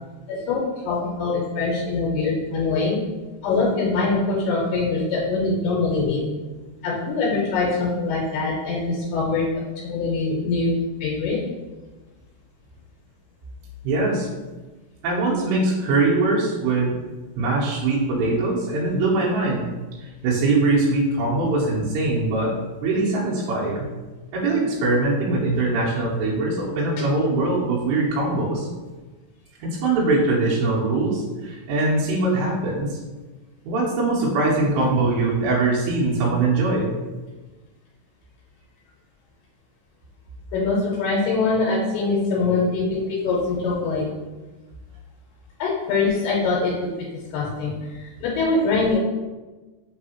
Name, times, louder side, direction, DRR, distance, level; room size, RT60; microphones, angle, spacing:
voice 1, 0.3-3.0 3.4-6.2 6.8-11.4 40.5-44.1 45.6-49.0, left 3 dB, 80° left, -4 dB, 2.6 m, -23 dB
voice 2, 13.8-14.3 15.0-17.0 17.4-19.7 20.0-22.5 22.8-23.9 24.3-28.7 29.6-33.0 33.6-36.9, right 2 dB, 85° right, -7 dB, 3.1 m, -22 dB
6.4 x 2.8 x 2.8 m, 1.2 s
omnidirectional pair, 4.9 m